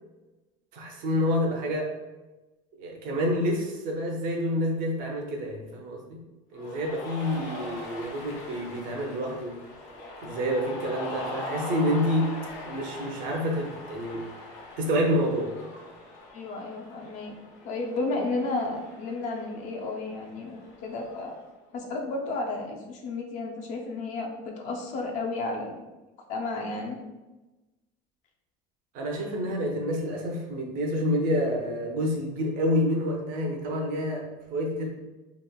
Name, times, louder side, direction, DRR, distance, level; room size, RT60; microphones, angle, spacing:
voice 1, 0.7-1.9 2.8-6.2 6.5-9.6 10.2-12.4 12.6-14.5 14.8-15.5 28.9-34.9, equal, 50° right, 1 dB, 0.5 m, -28 dB
Cheering, 6.6-21.4, left 2 dB, 85° left, 0.7 m, -41 dB
voice 2, 16.3-17.3 17.6-21.3 21.7-25.8 26.3-27.0, left 3 dB, 45° left, 1 dB, 0.4 m, -32 dB
2.9 x 2.7 x 2.2 m, 1.1 s
cardioid pair, 175°, 18 cm